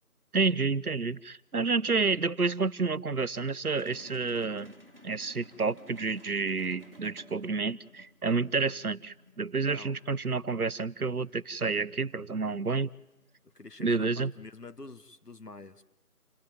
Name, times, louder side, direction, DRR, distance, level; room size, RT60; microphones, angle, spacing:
voice 1, 0.3-4.7 5.0-12.9 13.8-14.3, right 4 dB, 70° right, 0.8 m, -29 dB
sound 1, 3.7-14.5, left 1 dB, 35° right, 1.7 m, -56 dB
voice 2, 9.7-10.0 13.6-15.8, left 3 dB, 85° left, 1.6 m, -47 dB
28.0 x 15.0 x 9.1 m
figure-of-eight pair, 180°, 46 cm